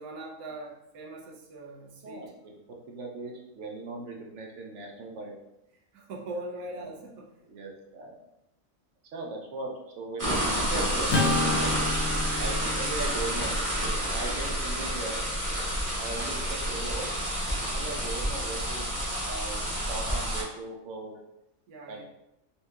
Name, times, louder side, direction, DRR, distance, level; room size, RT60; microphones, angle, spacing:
voice 1, 0.0-2.3 5.9-7.3 21.7-22.0, right 2 dB, 90° right, -2 dB, 1.2 m, -41 dB
voice 2, 2.7-5.3 7.5-8.1 9.1-11.1 11.4-11.9 12.4-13.5 13.8-15.2 16.0-17.1 17.6-18.9 19.2-21.2 21.9-22.0, right 3 dB, 65° right, -1 dB, 0.9 m, -38 dB
sound 1, 10.2-20.4, equal, 15° right, 0.8 m, -29 dB
Acoustic guitar / Strum, 11.1-15.5, left 2 dB, 60° left, 0.7 m, -32 dB
4.3 x 2.8 x 2.3 m, 0.89 s
omnidirectional pair, 1.5 m